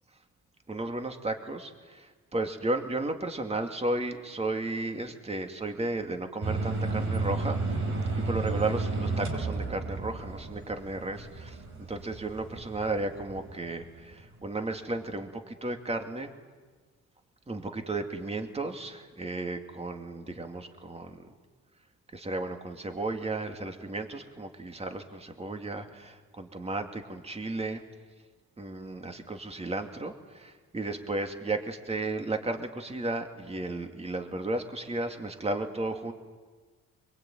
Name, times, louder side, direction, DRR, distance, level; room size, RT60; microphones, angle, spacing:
voice 1, 0.7-7.6 8.1-11.6 11.9-16.3 17.5-21.3 22.1-27.8 28.6-36.1, right 2 dB, 20° right, 5 dB, 2.6 m, -34 dB
sound 1, 6.4-14.5, right 3 dB, 65° right, 5.5 m, -33 dB
23.0 x 23.0 x 9.2 m, 1.4 s
cardioid pair, 90°, 30 cm